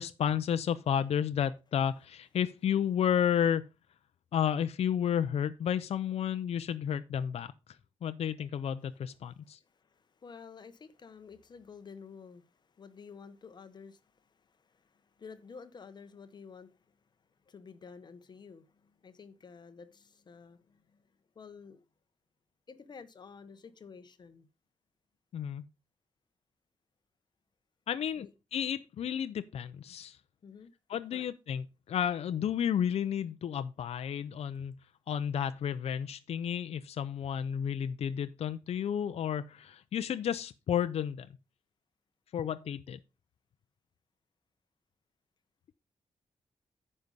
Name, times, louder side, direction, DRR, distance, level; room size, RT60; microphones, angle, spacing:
voice 1, 0.0-3.6 4.3-7.5 8.0-9.6 25.3-25.7 27.9-28.3 28.5-30.2 30.9-34.8 35.1-41.3 42.3-43.0, left 9 dB, 70° left, 0.6 m, -32 dB
voice 2, 1.8-2.9 9.1-17.0 17.4-21.8 22.7-24.5 28.2-28.3 30.4-30.7 31.1-31.3, left 5 dB, 40° left, 0.9 m, -52 dB
9.7 x 5.4 x 5.3 m
wide cardioid pair, 165°, 11 cm